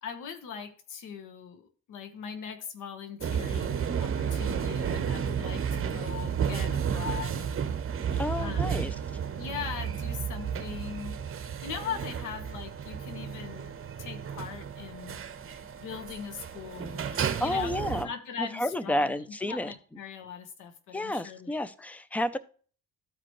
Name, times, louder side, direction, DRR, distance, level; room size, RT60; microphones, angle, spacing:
voice 1, 0.0-7.6 8.4-8.9 9.3-11.2 11.6-13.7 14.0-15.2 15.8-21.6, left 7 dB, 90° left, 8 dB, 1.5 m, -40 dB
sound 1, 3.2-18.0, right 7 dB, 45° right, 1.0 m, -32 dB
voice 2, 8.2-8.9 17.1-18.1 18.4-19.7 20.9-22.4, left 1 dB, 5° left, 14 dB, 0.6 m, -31 dB
13.5 x 4.9 x 3.1 m, 0.40 s
cardioid pair, 90°, 30 cm